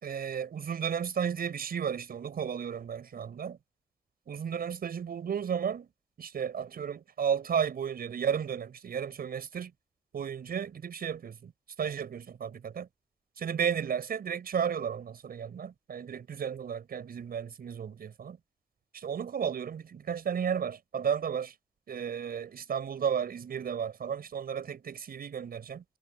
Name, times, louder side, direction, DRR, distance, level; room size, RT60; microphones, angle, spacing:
voice 1, 0.0-3.6 4.3-5.9 6.2-9.7 10.1-11.5 11.8-12.9 13.4-18.4 18.9-21.5 21.9-25.8, right 7 dB, 70° right, 6.2 m, -33 dB
supercardioid pair, 45°, 16 cm